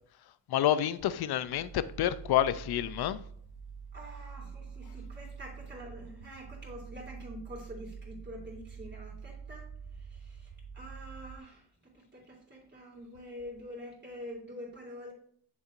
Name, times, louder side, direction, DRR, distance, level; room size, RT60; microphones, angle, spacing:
voice 1, 0.5-3.2, left 11 dB, 60° left, 0.5 m, -28 dB
sound 1, 1.3-11.4, right 6 dB, 85° right, 1.1 m, -46 dB
voice 2, 3.9-9.6 10.0-15.1, equal, 25° right, 3.1 m, -46 dB
7.4 x 6.7 x 2.6 m
cardioid pair, 90°, 45 cm